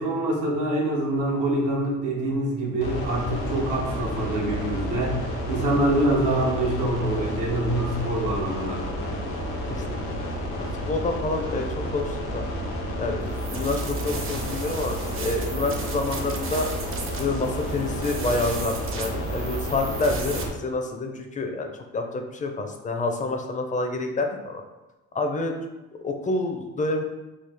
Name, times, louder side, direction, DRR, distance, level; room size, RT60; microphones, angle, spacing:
voice 1, 0.0-5.2 5.5-8.8, right 1 dB, 85° right, -2 dB, 0.8 m, -25 dB
sound 1, 2.8-20.5, equal, 90° left, 0.7 m, -31 dB
voice 2, 10.6-12.4 13.0-16.7 17.2-24.6 25.1-25.5 26.0-27.0, left 2 dB, 25° left, 4 dB, 0.4 m, -28 dB
sound 2, 13.3-20.4, right 5 dB, 45° right, 0.6 m, -38 dB
3.1 x 2.0 x 3.3 m, 1.1 s
cardioid pair, 90°, 30 cm